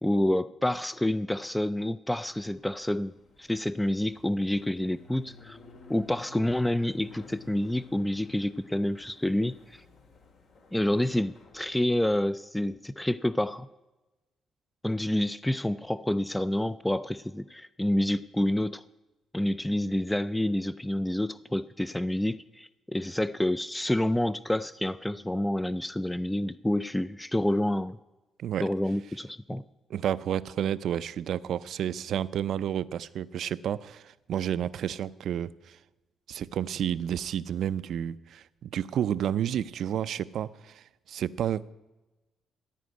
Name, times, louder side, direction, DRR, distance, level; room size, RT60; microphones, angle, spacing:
voice 1, 0.0-3.1 3.4-5.6 5.9-9.8 10.7-13.7 14.8-18.8 19.3-28.0 28.6-29.6, left 1 dB, 5° left, 0.4 m, -28 dB
sound 1, 2.2-11.8, left 4 dB, 65° left, 2.1 m, -54 dB
voice 2, 29.9-35.8 36.3-41.7, right 10 dB, 70° right, 0.4 m, -31 dB
14.5 x 5.2 x 9.4 m
cardioid pair, 90°, 0 cm